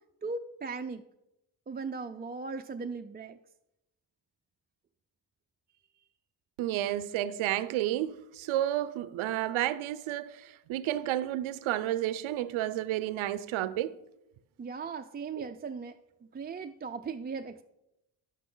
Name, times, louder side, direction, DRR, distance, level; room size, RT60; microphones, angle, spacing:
voice 1, 0.2-1.0 1.7-3.4 14.6-16.0 16.3-17.6, right 4 dB, 25° right, 0.4 m, -38 dB
voice 2, 6.6-14.0 15.4-15.5, right 13 dB, 85° right, 0.5 m, -31 dB
10.0 x 8.3 x 3.8 m
cardioid pair, 70°, 47 cm